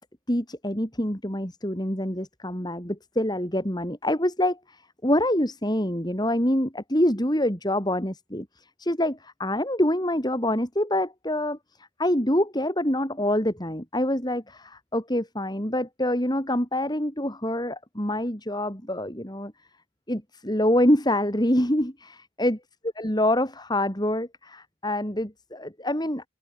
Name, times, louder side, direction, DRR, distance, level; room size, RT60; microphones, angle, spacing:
voice 1, 0.3-11.6 12.0-19.5 20.1-22.6 23.0-26.2, left 1 dB, 20° left, 5.1 m, -26 dB
open air
head